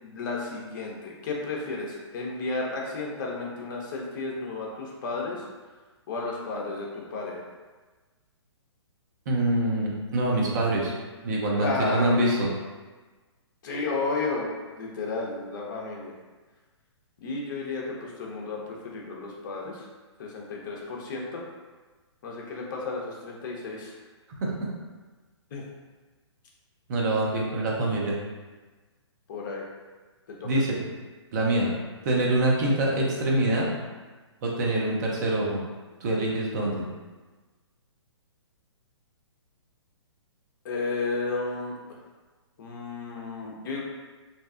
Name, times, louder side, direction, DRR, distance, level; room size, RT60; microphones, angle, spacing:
voice 1, 0.0-5.4 6.1-7.5 11.6-12.2 13.6-16.2 17.2-19.9 20.2-21.4 22.2-23.9 25.5-25.6 29.3-29.7 30.3-30.5 40.6-42.0 42.6-43.8, left 3 dB, 45° left, -2 dB, 0.6 m, -33 dB
voice 2, 9.3-10.9 11.2-12.5 24.4-24.7 26.9-28.1 30.4-30.8 31.3-31.7 32.0-33.7 34.4-35.6 36.0-36.8, right 1 dB, 40° right, -3 dB, 0.6 m, -25 dB
2.6 x 2.2 x 2.4 m, 1.3 s
hypercardioid pair, 150°, 15 cm